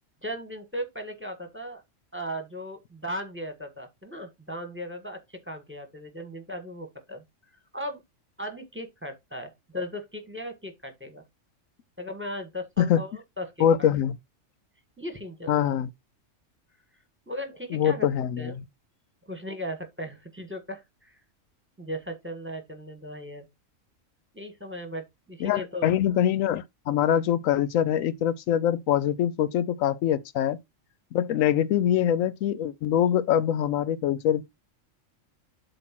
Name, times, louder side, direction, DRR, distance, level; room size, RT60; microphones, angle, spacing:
voice 1, 0.2-1.8 2.1-7.2 7.7-8.0 8.4-11.2 12.0-13.9 15.0-15.7 17.3-18.1 18.4-18.5 19.3-21.2 21.8-23.4 24.3-25.9, equal, 10° right, 1.5 m, -37 dB
voice 2, 13.6-14.2 15.5-15.9 17.7-18.5 25.4-30.6 31.1-34.5, left 10 dB, 80° left, 1.0 m, -24 dB
7.8 x 2.9 x 6.0 m
omnidirectional pair, 1.4 m